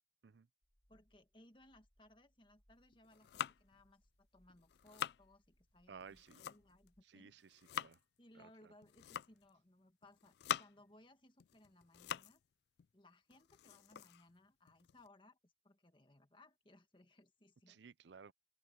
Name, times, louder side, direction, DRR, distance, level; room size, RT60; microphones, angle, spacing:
sound 1, 0.6-7.0, equal, 10° left, 1.9 m, -77 dB
voice 1, 0.9-7.3 8.2-12.4 12.9-17.8, left 1 dB, 30° left, 1.7 m, -65 dB
sound 2, 2.9-3.8 4.5-5.2 6.0-6.9 7.3-8.0 8.8-9.5 10.0-10.9 11.4-12.4 12.8-12.9 13.3-15.1, left 9 dB, 65° left, 0.3 m, -45 dB
voice 2, 5.9-6.4 7.1-8.0 8.3-8.7 17.7-18.3, right 6 dB, 80° right, 0.6 m, -57 dB
open air
head